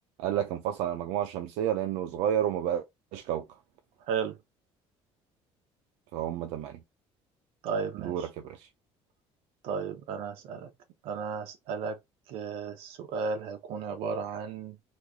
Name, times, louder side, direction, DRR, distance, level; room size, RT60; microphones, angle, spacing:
voice 1, 0.2-2.8 3.1-3.5 6.1-6.8 8.0-8.7, right 10 dB, 80° right, 0.5 m, -30 dB
voice 2, 7.6-8.2 9.6-10.7 11.0-12.0 12.3-14.8, right 5 dB, 60° right, 0.8 m, -34 dB
3.1 x 2.4 x 3.5 m
cardioid pair, 175°, 11 cm